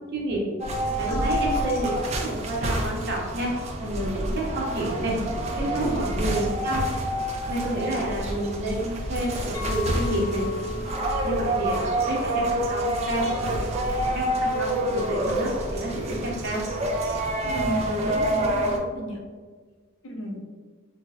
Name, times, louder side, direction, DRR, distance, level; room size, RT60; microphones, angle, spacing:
voice 1, 0.1-0.4 1.0-3.5 3.8-5.2 5.5-6.9 7.5-10.4 11.2-13.7 14.0-16.6, right 1 dB, 50° right, -3 dB, 0.7 m, -29 dB
sound 1, 0.6-18.8, right 1 dB, 30° right, 0.3 m, -28 dB
Chink clink, 9.5-14.8, left 6 dB, 15° left, 0.5 m, -37 dB
voice 2, 17.4-19.2 20.0-20.4, equal, 65° left, 0 dB, 0.5 m, -33 dB
4.4 x 2.0 x 2.3 m, 1.5 s
head